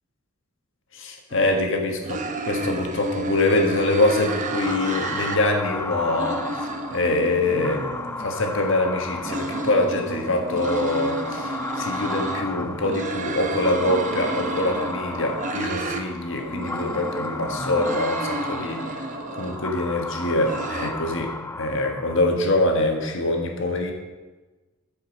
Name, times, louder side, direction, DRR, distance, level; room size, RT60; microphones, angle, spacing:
voice 1, 0.9-7.9 8.2-18.8 19.4-21.3 21.6-23.9, left 2 dB, 65° left, 3 dB, 1.5 m, -24 dB
sound 1, 1.3-1.7 2.0-5.4 5.7-8.3 9.0-12.4 12.8-16.0 16.4-19.7 20.1-20.9, right 2 dB, 40° right, 0.8 m, -31 dB
sound 2, 3.8-22.7, left 3 dB, 10° left, 0.3 m, -34 dB
13.0 x 5.4 x 5.3 m, 1.2 s
head